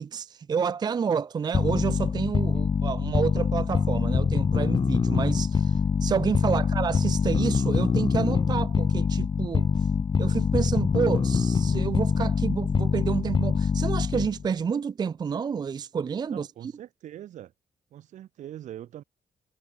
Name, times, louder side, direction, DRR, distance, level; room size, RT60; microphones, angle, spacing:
voice 1, 0.0-9.7 10.2-16.7, right 6 dB, 35° right, 0.4 m, -29 dB
sound 1, 1.5-14.5, left 6 dB, 40° left, 1.1 m, -24 dB
voice 2, 16.3-17.5 17.9-19.0, right 12 dB, 80° right, 5.0 m, -42 dB
cardioid pair, 85°, 12 cm